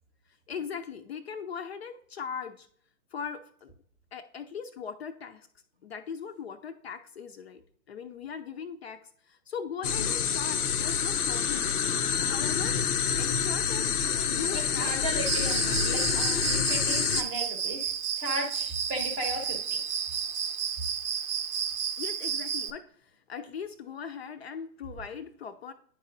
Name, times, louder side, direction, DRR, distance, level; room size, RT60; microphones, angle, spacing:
voice 1, 0.5-2.7 3.1-3.7 4.1-5.5 5.8-7.6 7.9-12.8 13.2-14.0 14.3-15.0 22.0-25.7, left 6 dB, 45° left, 8 dB, 0.5 m, -39 dB
sound 1, 9.8-17.2, left 7 dB, 90° left, 0.6 m, -27 dB
voice 2, 9.8-10.2 14.1-19.8, right 1 dB, 15° right, 5 dB, 0.7 m, -36 dB
Cricket, 15.3-22.7, right 7 dB, 75° right, 0.8 m, -32 dB
9.9 x 4.2 x 2.6 m, 0.63 s
hypercardioid pair, 135°, 44 cm